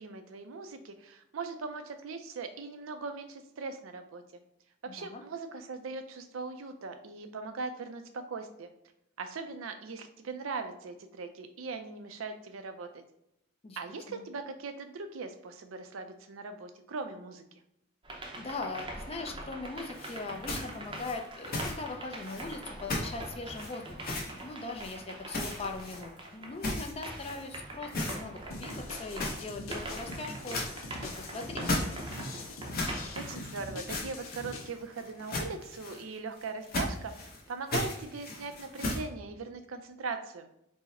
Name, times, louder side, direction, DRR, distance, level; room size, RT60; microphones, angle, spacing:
voice 1, 0.0-4.2 4.8-8.7 9.2-13.0 13.8-17.4 33.2-37.1 37.5-40.5, right 4 dB, 70° right, 7 dB, 0.5 m, -40 dB
voice 2, 4.9-5.2 13.6-13.8 14.1-14.2 18.4-30.6 31.0-31.8, left 3 dB, 30° left, 4 dB, 0.4 m, -40 dB
sound 1, 18.0-26.7 27.0-33.4, right 1 dB, 25° right, 0.6 m, -43 dB
sound 2, 19.9-21.8 22.2-22.6 22.9-23.2 23.5-24.4 24.8-25.0 25.3-26.2 26.6-27.6 27.9-28.2 28.6-39.0, left 2 dB, 45° left, 1.0 m, -37 dB
sound 3, 28.5-34.7, left 2 dB, 75° left, 0.6 m, -43 dB
4.6 x 2.1 x 4.1 m, 0.81 s
head